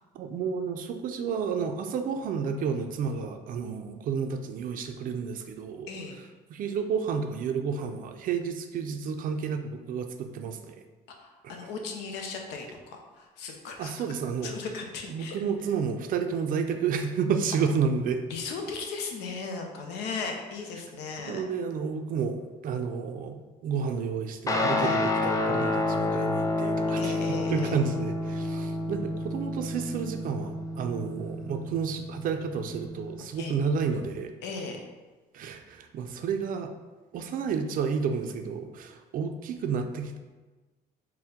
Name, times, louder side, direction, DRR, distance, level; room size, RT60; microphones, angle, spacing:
voice 1, 0.1-5.9 6.5-10.8 13.8-14.5 15.1-18.2 21.3-34.3 35.3-36.7 37.1-40.2, right 6 dB, 55° right, 6 dB, 0.4 m, -31 dB
voice 2, 11.2-13.9 14.4-15.4 18.3-21.4 24.8-25.0 27.0-27.8 33.4-33.6 34.4-34.8, left 4 dB, 90° left, 3 dB, 0.6 m, -37 dB
Guitar, 24.5-33.2, left 2 dB, 20° left, 0.4 m, -29 dB
4.3 x 2.2 x 3.6 m, 1.3 s
cardioid pair, 110°, 17 cm